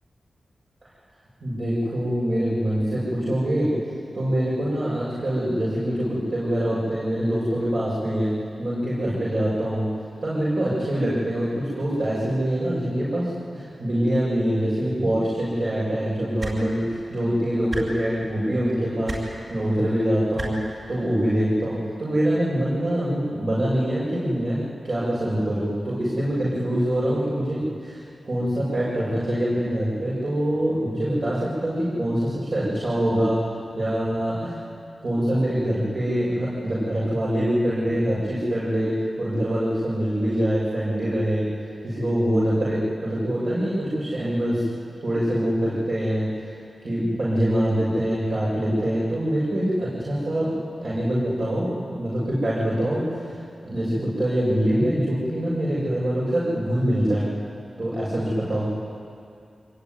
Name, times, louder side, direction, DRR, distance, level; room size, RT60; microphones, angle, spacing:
voice 1, 1.4-3.7 4.1-8.3 8.6-9.9 10.2-16.8 17.1-20.6 20.9-24.6 24.8-33.4 33.7-34.6 35.0-41.5 41.8-44.6 45.0-46.3 46.8-53.2 53.6-57.3 57.8-58.7, equal, 50° right, -8 dB, 7.4 m, -24 dB
sound 1, 16.4-16.6 17.7-17.8 19.1-19.2 20.4-20.5 21.7-21.8, right 2 dB, 35° right, 6.7 m, -30 dB
25.5 x 21.0 x 9.8 m, 2.5 s
wide cardioid pair, 115°, 0 cm